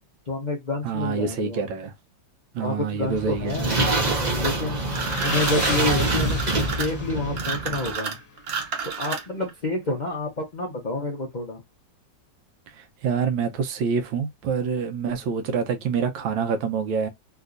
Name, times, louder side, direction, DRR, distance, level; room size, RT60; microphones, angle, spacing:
voice 1, 0.3-1.7 2.6-3.6 4.3-4.8 5.2-8.2 9.0-11.6, left 2 dB, 60° left, 0.4 m, -28 dB
voice 2, 0.8-1.9 2.5-3.6 12.7-17.1, right 6 dB, 85° right, 1.4 m, -26 dB
sound 1, 3.0-7.9, right 2 dB, 40° right, 0.6 m, -25 dB
sound 2, 4.6-8.4, left 8 dB, 80° left, 1.4 m, -36 dB
sound 3, 4.9-9.5, right 6 dB, 60° right, 1.2 m, -31 dB
3.3 x 2.9 x 2.5 m
omnidirectional pair, 2.0 m